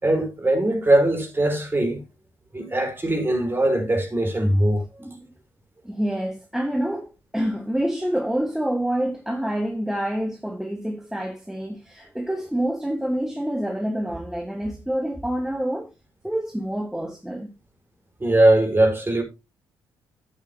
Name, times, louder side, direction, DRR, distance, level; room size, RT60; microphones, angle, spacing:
voice 1, 0.0-2.0 2.5-4.8 18.2-19.2, right 1 dB, 20° right, 5.1 m, -20 dB
voice 2, 5.8-15.9 16.2-17.5, right 1 dB, 5° right, 1.7 m, -27 dB
13.0 x 9.0 x 2.8 m
hypercardioid pair, 45°, 11 cm